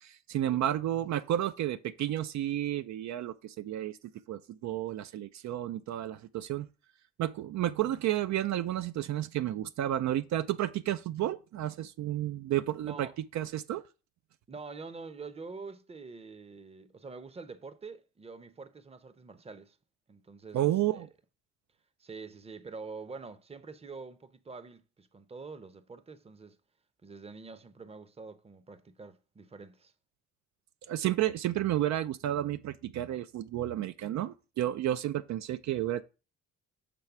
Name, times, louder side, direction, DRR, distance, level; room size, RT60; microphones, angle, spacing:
voice 1, 0.0-4.0 4.3-6.7 7.2-13.1 13.3-13.8 20.5-21.1 30.9-36.0, right 12 dB, 65° right, 0.5 m, -31 dB
voice 2, 12.8-13.2 14.5-19.8 20.1-21.1 22.0-26.6 27.0-29.9, right 4 dB, 20° right, 0.7 m, -46 dB
6.9 x 3.2 x 5.8 m
cardioid pair, 90°, 30 cm